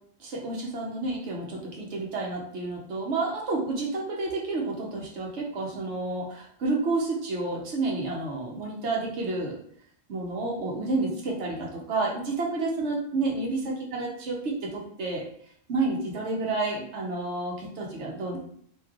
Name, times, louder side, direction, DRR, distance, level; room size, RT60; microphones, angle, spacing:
voice 1, 0.2-9.6 10.1-15.2 15.7-18.4, right 3 dB, 90° right, -1 dB, 1.1 m, -30 dB
3.1 x 2.6 x 2.4 m, 0.64 s
omnidirectional pair, 1.1 m